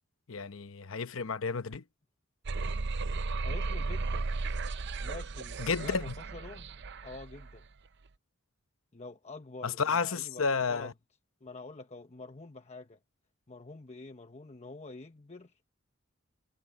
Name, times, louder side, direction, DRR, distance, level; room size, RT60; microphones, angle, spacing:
voice 1, 0.3-1.8 5.6-6.1 9.6-10.9, left 5 dB, 70° left, 0.9 m, -31 dB
sound 1, 2.5-7.6, right 3 dB, 55° right, 0.6 m, -35 dB
voice 2, 3.4-4.3 5.0-6.7 7.0-7.7 8.9-10.9 11.4-13.0 13.5-15.7, left 3 dB, 30° left, 1.0 m, -47 dB
head